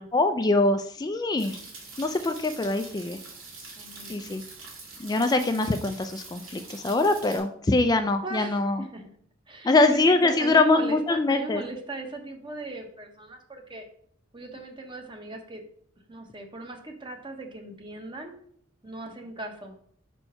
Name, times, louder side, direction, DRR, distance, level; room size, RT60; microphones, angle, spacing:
voice 1, 0.1-1.6 2.0-3.2 4.1-4.4 5.0-8.8 9.6-11.6, left 2 dB, 20° left, 8 dB, 0.3 m, -23 dB
sound 1, 1.4-7.4, right 3 dB, 85° right, 2.4 m, -44 dB
voice 2, 3.8-4.2 8.2-9.1 9.5-13.8 14.3-15.6 16.1-18.3 18.8-19.7, right 2 dB, 25° right, 4 dB, 0.9 m, -38 dB
5.4 x 4.5 x 5.4 m, 0.62 s
head